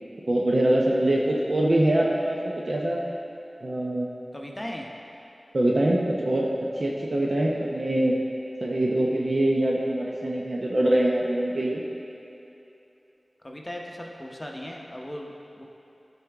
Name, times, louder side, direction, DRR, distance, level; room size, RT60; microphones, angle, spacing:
voice 1, 0.3-3.0 3.6-4.1 5.5-6.5 6.8-8.1 8.6-11.8, right 1 dB, 60° right, -3 dB, 0.7 m, -24 dB
voice 2, 4.3-4.9 13.4-15.6, equal, 20° left, 0 dB, 0.9 m, -37 dB
11.5 x 4.3 x 3.5 m, 2.9 s
wide cardioid pair, 55°, 0 cm